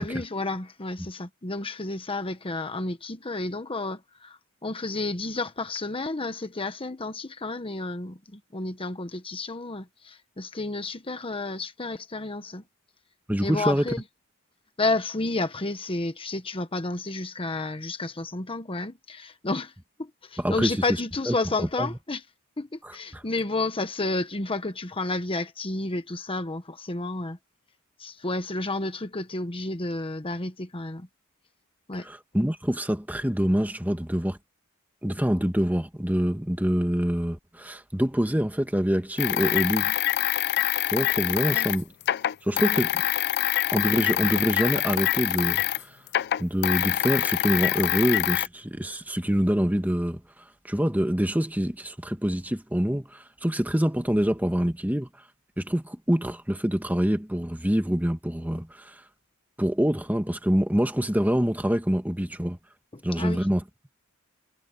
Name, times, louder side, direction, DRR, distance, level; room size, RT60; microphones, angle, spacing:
voice 1, 0.0-12.6 13.4-14.0 14.8-19.7 20.0-22.2 22.6-27.4 28.0-31.1 31.9-32.1 41.5-41.7 62.9-63.5, left 2 dB, 25° left, 1.2 m, -31 dB
voice 2, 13.3-13.8 20.4-20.8 21.3-21.9 22.8-23.2 32.0-34.4 35.0-39.9 40.9-41.9 42.4-43.0 43.7-45.9 46.4-50.2 50.7-55.1 55.6-59.0 59.6-62.6 63.0-63.6, equal, 10° right, 1.4 m, -25 dB
sound 1, 39.2-45.8 46.1-48.5, left 13 dB, 50° left, 0.4 m, -25 dB
head